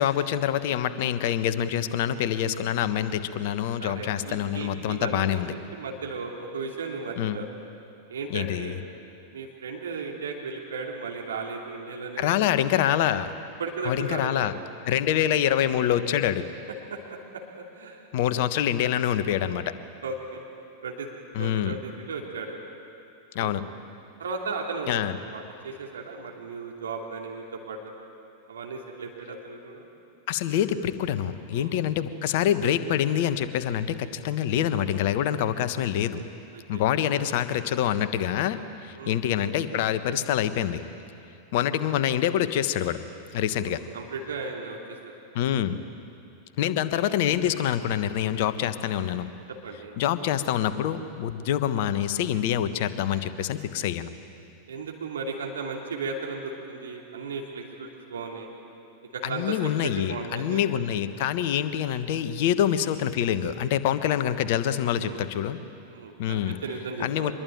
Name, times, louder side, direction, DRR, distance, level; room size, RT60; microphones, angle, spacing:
voice 1, 0.0-5.5 7.2-7.4 8.3-8.8 12.2-13.3 13.8-14.5 14.8-16.5 18.1-19.8 21.3-21.8 23.3-23.7 24.9-25.1 30.3-36.2 36.7-40.8 41.5-43.0 43.3-43.8 45.3-45.8 46.6-49.3 50.0-54.1 59.2-65.6 66.2-66.6 67.0-67.3, left 10 dB, 50° left, 12 dB, 1.2 m, -26 dB
voice 2, 3.8-7.5 8.1-8.8 9.3-12.4 13.6-14.5 16.9-17.0 17.5-18.1 20.0-20.4 20.8-21.1 21.4-22.5 23.4-23.6 24.2-25.0 25.3-27.8 28.5-29.9 31.5-31.7 36.5-36.8 39.0-39.2 43.7-45.0 46.7-46.8 47.1-47.2 49.6-50.0 54.7-58.5 59.1-60.8 61.4-61.5 65.0-65.3 65.9-67.3, right 4 dB, 65° right, 0 dB, 2.8 m, -35 dB
24.5 x 21.5 x 9.1 m, 2.6 s
figure-of-eight pair, 90°, 0 cm